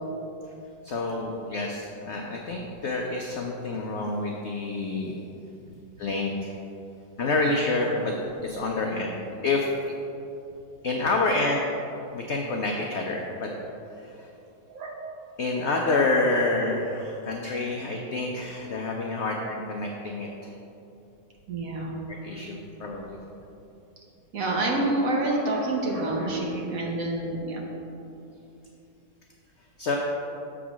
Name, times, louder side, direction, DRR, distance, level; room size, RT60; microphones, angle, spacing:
voice 1, 0.8-5.2 6.0-6.5 7.2-8.1 8.4-9.1 9.4-9.7 10.8-11.6 12.1-13.5 14.0-14.3 15.4-20.3 22.2-23.2 29.8-30.0, left 2 dB, 85° left, 0 dB, 0.6 m, -28 dB
voice 2, 21.5-22.0 24.3-27.6, right 2 dB, 60° right, -1 dB, 1.2 m, -27 dB
7.1 x 3.7 x 6.0 m, 2.8 s
omnidirectional pair, 1.9 m